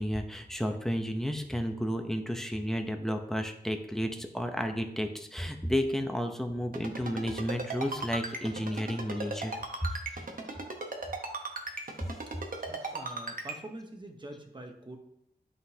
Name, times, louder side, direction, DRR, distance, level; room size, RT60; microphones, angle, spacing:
voice 1, 0.0-10.3, equal, ahead, 4 dB, 0.7 m, -32 dB
Ringtone, 6.7-13.5, right 3 dB, 55° right, 1.0 m, -36 dB
voice 2, 12.7-15.0, right 1 dB, 25° right, 3 dB, 1.0 m, -45 dB
11.0 x 3.8 x 2.8 m, 0.77 s
wide cardioid pair, 100°, 18 cm